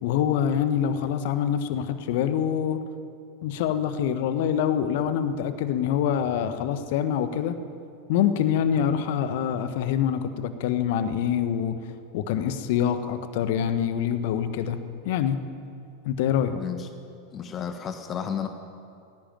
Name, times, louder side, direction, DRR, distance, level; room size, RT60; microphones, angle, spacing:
voice 1, 0.0-2.8 3.4-7.6 8.1-11.8 12.1-15.4 16.0-16.6, left 9 dB, 55° left, 10 dB, 1.4 m, -25 dB
voice 2, 16.5-16.9 17.3-18.5, left 8 dB, 30° left, 6 dB, 1.6 m, -32 dB
20.5 x 17.0 x 9.2 m, 2.6 s
figure-of-eight pair, 85°, 0 cm